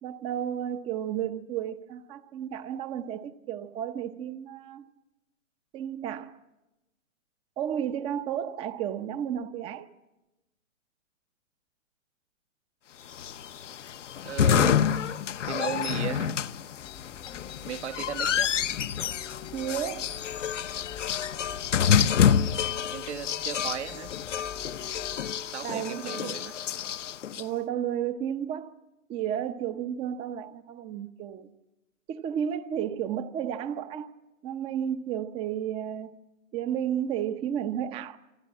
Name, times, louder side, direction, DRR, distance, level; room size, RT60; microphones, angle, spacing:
voice 1, 0.0-4.9 5.7-6.4 7.6-9.9 19.5-20.1 25.6-26.2 27.4-28.7 29.1-31.5 32.1-34.1 34.4-36.1 36.5-38.2, right 9 dB, 15° right, 0.9 m, -32 dB
sound 1, 13.1-27.4, left 8 dB, 60° left, 1.0 m, -28 dB
voice 2, 14.2-15.2 15.4-16.4 17.6-18.5 22.9-24.1 25.5-26.5, right 10 dB, 55° right, 1.5 m, -36 dB
sound 2, 16.8-25.3, left 8 dB, 10° left, 1.0 m, -45 dB
27.0 x 26.5 x 7.3 m
hypercardioid pair, 140°, 41 cm